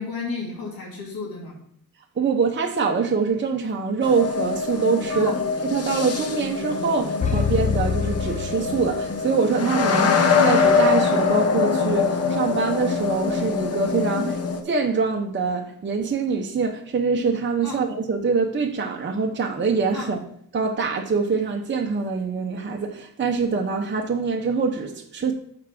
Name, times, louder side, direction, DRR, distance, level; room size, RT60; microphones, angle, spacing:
voice 1, 0.0-1.5 5.1-5.4 9.9-10.2 14.1-14.3 17.6-17.8 19.9-20.1, left 4 dB, 75° left, 2.7 m, -32 dB
voice 2, 2.2-5.4 5.6-10.1 10.4-14.3 14.7-20.2 20.5-25.3, right 5 dB, 30° right, 0.9 m, -24 dB
sound 1, 4.0-14.6, left 5 dB, 45° left, 1.0 m, -23 dB
sound 2, 7.2-9.3, left 6 dB, 20° left, 0.9 m, -26 dB
7.2 x 4.8 x 5.8 m
wide cardioid pair, 115°, 36 cm